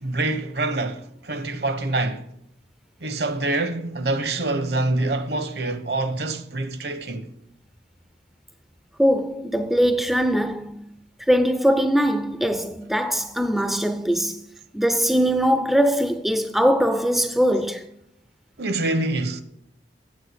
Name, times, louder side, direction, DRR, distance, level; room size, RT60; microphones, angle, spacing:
voice 1, 0.0-2.2 3.0-7.3 18.6-19.4, right 2 dB, 60° right, 1.0 m, -26 dB
voice 2, 9.0-10.9 11.3-14.4 14.7-17.9, equal, ahead, 0.4 m, -21 dB
8.7 x 7.7 x 6.3 m
head